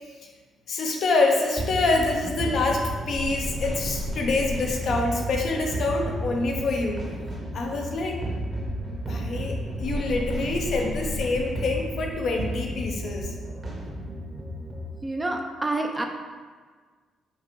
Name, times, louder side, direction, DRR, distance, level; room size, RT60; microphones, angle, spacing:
voice 1, 0.7-7.0 7.5-8.2 8.9-13.3, left 3 dB, 60° left, 1 dB, 0.6 m, -26 dB
sound 1, 1.6-14.9, right 1 dB, 35° right, 0.9 m, -32 dB
voice 2, 15.0-16.1, right 2 dB, 15° right, 3 dB, 0.4 m, -28 dB
5.3 x 2.5 x 3.1 m, 1.5 s
cardioid pair, 90°, 0 cm